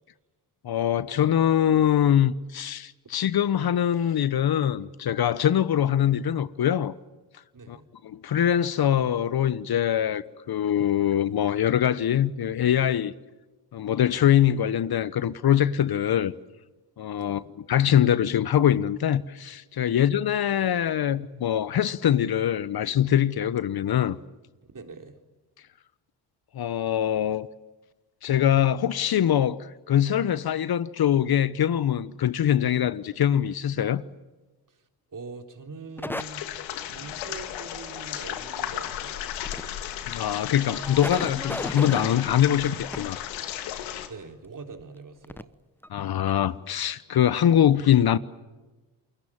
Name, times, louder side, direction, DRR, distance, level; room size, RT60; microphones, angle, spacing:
voice 1, 0.6-6.9 7.7-7.8 8.0-13.1 13.7-16.3 17.0-17.4 17.7-24.2 26.5-27.5 28.2-34.0 40.1-43.2 45.9-48.2, left 10 dB, 55° left, 1.1 m, -23 dB
voice 2, 7.5-7.9 17.2-17.5 19.9-20.0 24.7-25.2 34.7-34.8 35.1-39.3 44.0-45.5, right 4 dB, 45° right, 3.8 m, -43 dB
sound 1, 36.0-36.2 39.3-39.6 40.1-40.2 40.7-43.0 44.8-44.9 45.2-45.4 45.8-45.9, left 1 dB, 5° left, 0.9 m, -34 dB
sound 2, 36.2-44.1, left 11 dB, 80° left, 2.3 m, -34 dB
28.5 x 22.0 x 7.4 m
hypercardioid pair, 50°, 46 cm